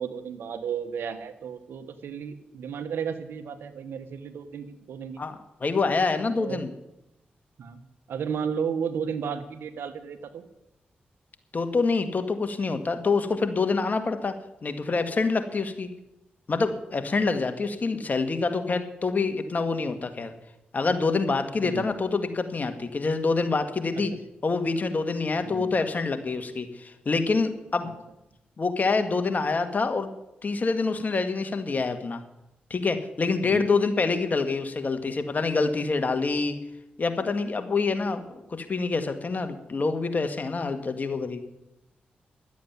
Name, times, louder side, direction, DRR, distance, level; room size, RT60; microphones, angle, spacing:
voice 1, 0.0-5.2 6.4-6.6 7.6-7.8 8.1-10.4 21.6-21.9 23.9-24.1 25.4-25.8 27.8-27.9 33.4-33.7, right 7 dB, 80° right, 10 dB, 1.2 m, -33 dB
voice 2, 5.6-6.7 11.5-14.3 14.6-15.9 16.5-20.3 20.7-24.1 24.4-27.9 28.6-30.1 30.4-32.2 32.7-36.6 37.0-41.4, left 4 dB, 45° left, 8 dB, 1.8 m, -26 dB
12.0 x 8.4 x 9.5 m, 0.89 s
cardioid pair, 50°, 4 cm